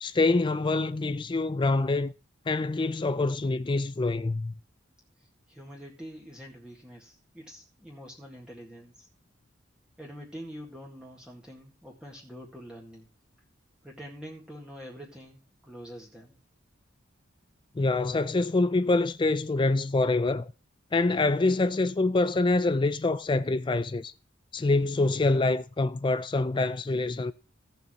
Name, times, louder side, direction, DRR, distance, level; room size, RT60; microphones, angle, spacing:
voice 1, 0.0-2.1 2.5-4.5 17.8-20.5 20.9-24.1 24.5-27.3, left 2 dB, 25° left, 0.4 m, -25 dB
voice 2, 5.2-9.1 10.0-13.1 13.8-16.4, equal, 5° right, 1.8 m, -45 dB
16.5 x 6.9 x 3.1 m
head